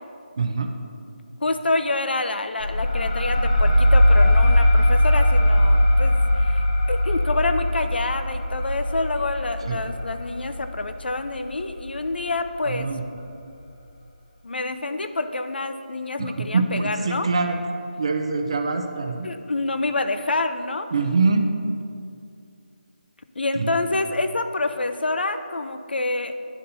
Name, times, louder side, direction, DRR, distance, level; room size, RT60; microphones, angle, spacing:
voice 1, 0.4-0.7 9.7-9.8 12.7-13.0 16.2-17.6 18.0-19.3 20.9-21.5 23.5-23.7, right 4 dB, 35° right, 5 dB, 0.5 m, -24 dB
voice 2, 1.4-6.6 6.9-12.9 14.4-17.3 19.2-20.9 23.4-26.3, left 2 dB, 85° left, 9 dB, 0.5 m, -27 dB
sound 1, 2.6-11.8, left 1 dB, 45° left, 0.9 m, -20 dB
11.0 x 4.2 x 2.6 m, 2.5 s
figure-of-eight pair, 175°, 5 cm